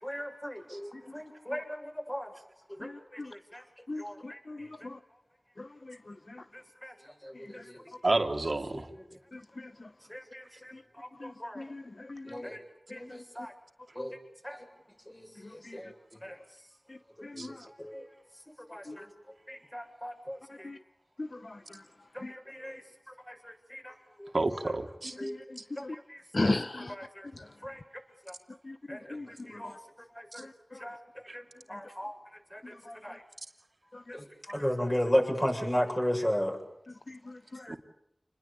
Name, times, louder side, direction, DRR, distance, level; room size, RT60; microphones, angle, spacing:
voice 1, 0.0-2.3 2.7-3.6 4.0-4.7 6.5-6.9 7.2-7.8 8.7-9.0 10.1-11.7 12.3-12.6 12.9-13.5 13.9-14.2 14.4-14.6 15.1-16.4 17.3-17.9 18.7-19.1 19.5-20.7 22.1-22.8 23.3-24.3 24.7-24.8 25.2-25.4 25.8-26.2 26.9-27.3 27.6-27.8 28.3-28.4 28.9-29.7 30.1-30.5 30.8-31.0 31.3-31.4 31.7-32.1 32.5-32.7 33.0-33.2 34.1-34.3 34.5-36.6 37.7-37.8, equal, 15° left, 2 dB, 7.7 m, -36 dB
voice 2, 2.8-3.3 3.9-5.0 5.6-6.4 7.3-7.7 9.3-9.9 10.7-10.8 11.2-12.4 12.9-13.2 14.0-14.1 15.4-15.8 16.9-17.7 18.9-19.0 20.5-20.8 21.2-21.8 22.2-22.3 25.2-26.0 26.3-26.9 27.3-27.5 28.6-29.8 30.4-30.9 31.7-31.8 32.7-33.2 33.9-34.2 34.5-34.6 37.1-37.7, left 2 dB, 55° left, 11 dB, 1.0 m, -39 dB
voice 3, 8.0-8.9 17.4-17.5 24.3-25.1 31.3-31.4 37.7-37.8, right 2 dB, 60° right, 5 dB, 2.5 m, -29 dB
28.5 x 21.0 x 8.7 m, 0.76 s
wide cardioid pair, 50°, 0 cm